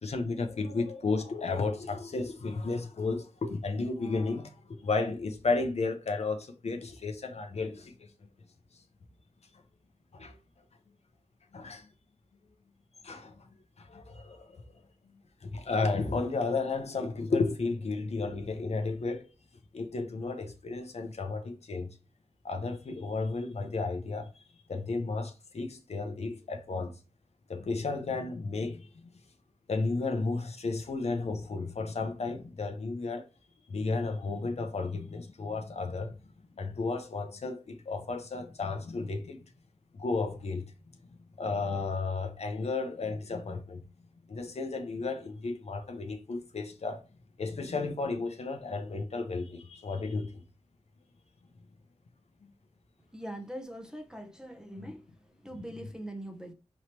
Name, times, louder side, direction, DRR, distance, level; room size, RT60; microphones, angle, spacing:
voice 1, 0.0-8.1 10.1-10.4 11.5-11.9 13.0-13.5 13.8-14.6 15.4-19.3 19.7-21.9 22.4-24.3 24.7-27.0 27.5-29.1 29.7-33.3 33.7-36.1 36.6-39.4 39.9-40.7 41.4-43.8 44.3-47.0 47.4-50.4 54.8-54.9 55.5-55.6, left 3 dB, 65° left, 0.8 m, -33 dB
voice 2, 53.1-55.0 55.3-56.5, right 1 dB, 5° right, 0.8 m, -42 dB
4.8 x 3.1 x 2.9 m
wide cardioid pair, 80°, 12 cm